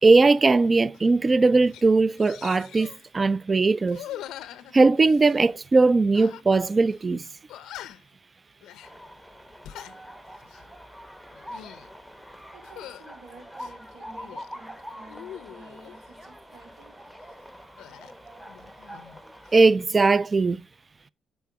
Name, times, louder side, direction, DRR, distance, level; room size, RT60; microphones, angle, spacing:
voice 1, 0.0-2.9 3.1-4.0 4.7-7.2 19.5-20.6, right 3 dB, 30° right, 0.3 m, -19 dB
sound 1, 0.9-1.1 1.4-1.8 2.2-3.1 3.9-5.4 6.1-6.7 6.9-7.0 7.5-8.1 8.6-8.9 9.5-10.0 10.4-10.7 11.3-11.9 12.6-13.0 13.6-14.5 15.0-16.0 17.8-19.2 19.5-20.1, left 12 dB, 85° left, 0.5 m, -43 dB
sound 2, 8.8-19.7, equal, ahead, 0.9 m, -44 dB
voice 2, 12.5-16.9, right 3 dB, 85° right, 2.9 m, -51 dB
8.2 x 4.1 x 4.6 m
cardioid pair, 90°, 0 cm